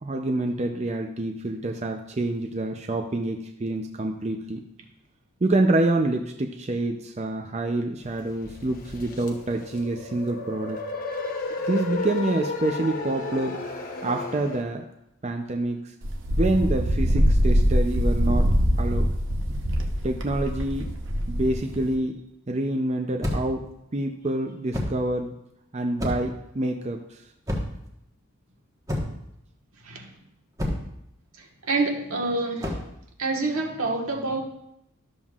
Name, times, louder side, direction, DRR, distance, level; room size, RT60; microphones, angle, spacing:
voice 1, 0.0-4.6 5.4-10.8 11.7-13.6 14.0-14.8 15.2-15.9 16.4-18.5 18.8-19.1 20.0-20.9 21.3-23.7 23.9-25.3 25.7-27.2, right 2 dB, 30° right, 3 dB, 0.5 m, -27 dB
sound 1, 8.1-14.6, left 2 dB, 40° left, 1.0 m, -33 dB
Wind, 16.0-21.9, equal, 60° right, 0.9 m, -23 dB
sound 2, 23.2-23.6 24.7-25.0 26.0-26.4 27.5-27.9 28.9-29.3 30.6-31.0 32.6-32.9, left 1 dB, 15° right, 1.2 m, -29 dB
voice 2, 31.4-32.7 33.2-34.4, right 3 dB, 80° right, 1 dB, 1.5 m, -27 dB
12.5 x 7.2 x 2.4 m, 0.81 s
head